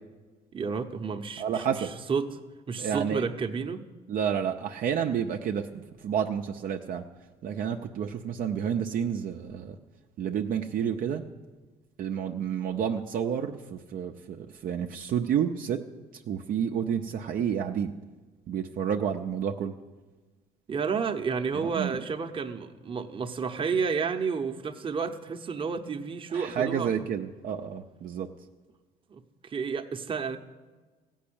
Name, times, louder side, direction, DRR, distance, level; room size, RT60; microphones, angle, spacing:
voice 1, 0.5-2.3 2.7-3.8 20.7-26.9 29.1-30.4, right 5 dB, 30° right, 6 dB, 0.9 m, -31 dB
voice 2, 1.4-1.9 2.8-3.2 4.1-7.0 7.4-9.8 10.2-11.2 12.0-15.8 16.1-17.9 18.5-19.7 21.5-22.0 26.3-28.3, right 8 dB, 55° right, 3 dB, 0.6 m, -30 dB
15.5 x 5.5 x 8.7 m, 1.3 s
cardioid pair, 110°, 17 cm